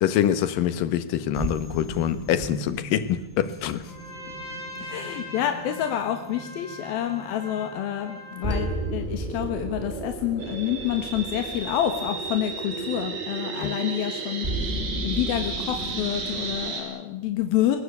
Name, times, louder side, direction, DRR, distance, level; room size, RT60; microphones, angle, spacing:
voice 1, 0.0-3.8 13.6-13.7, left 10 dB, 75° left, 2.8 m, -25 dB
sound 1, 1.3-16.7, right 2 dB, 15° right, 2.5 m, -35 dB
Trumpet, 3.8-8.9, left 1 dB, 30° left, 7.4 m, -41 dB
voice 2, 4.8-14.7 15.0-17.8, left 11 dB, 90° left, 3.4 m, -28 dB
sound 2, 10.4-16.8, right 4 dB, 65° right, 5.2 m, -34 dB
21.0 x 20.5 x 8.3 m
omnidirectional pair, 4.1 m